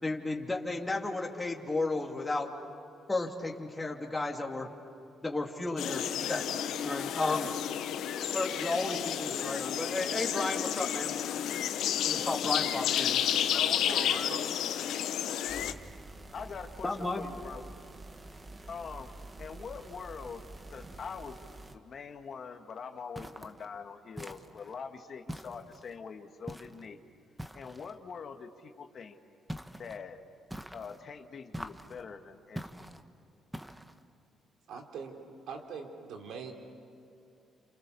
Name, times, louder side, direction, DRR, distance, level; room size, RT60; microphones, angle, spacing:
voice 1, 0.0-2.5 3.1-4.7 5.2-7.5 8.3-11.2 12.1-13.2 16.8-17.2, left 2 dB, 15° left, 1 dB, 2.6 m, -33 dB
sound 1, 5.8-15.7, left 10 dB, 80° left, 1.0 m, -31 dB
voice 2, 7.2-7.6 13.5-14.4 16.3-17.7 18.7-19.1 19.4-20.4 20.7-21.4 21.7-27.0 27.5-29.2 29.7-30.2 30.7-33.0, left 6 dB, 50° left, 6 dB, 1.9 m, -43 dB
voice 3, 13.6-14.5 34.7-35.1 35.5-36.5, right 5 dB, 80° right, 3 dB, 3.4 m, -42 dB
sound 2, 15.5-21.7, right 2 dB, 30° right, 1.8 m, -48 dB
sound 3, 23.1-23.6 24.2-24.7 25.3-25.9 26.5-26.9 27.4-27.9 29.5-30.0 30.5-31.0 31.5-32.0 32.5-33.0 33.5-34.0, right 1 dB, 5° right, 1.3 m, -43 dB
29.5 x 28.0 x 7.0 m, 2.5 s
cardioid pair, 90°, 0 cm